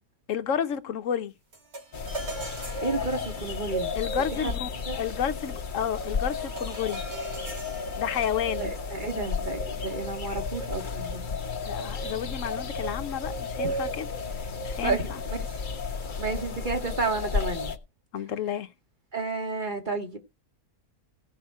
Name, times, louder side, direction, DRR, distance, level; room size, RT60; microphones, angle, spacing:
voice 1, 0.3-1.3 3.9-4.7 5.0-7.0 8.0-8.7 11.6-14.1 14.4-15.2 18.1-18.7, left 8 dB, 60° left, 1.1 m, -31 dB
sound 1, 1.5-11.0, right 2 dB, 70° right, 3.2 m, -44 dB
sound 2, 1.9-17.8, left 4 dB, 35° left, 1.0 m, -33 dB
voice 2, 2.8-3.9 4.4-4.5 4.9-5.0 8.6-11.2 13.6-13.7 14.8-15.6 16.2-17.7 19.1-20.2, right 3 dB, 30° right, 1.7 m, -31 dB
16.5 x 5.9 x 4.7 m
omnidirectional pair, 1.6 m